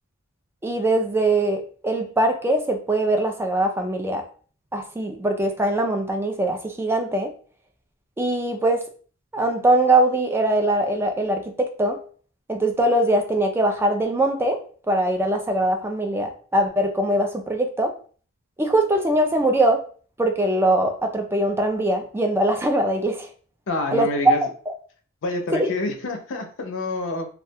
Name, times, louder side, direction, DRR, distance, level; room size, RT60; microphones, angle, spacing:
voice 1, 0.6-4.2 4.7-7.3 8.2-8.8 9.3-12.0 12.5-14.6 14.9-17.9 18.6-19.8 20.2-23.3 23.9-24.1 24.7-24.8 25.5-25.7, right 1 dB, 10° right, 4 dB, 0.3 m, -22 dB
voice 2, 23.7-24.5 25.2-27.3, left 2 dB, 65° left, 5 dB, 0.5 m, -27 dB
2.3 x 2.2 x 2.7 m, 0.42 s
head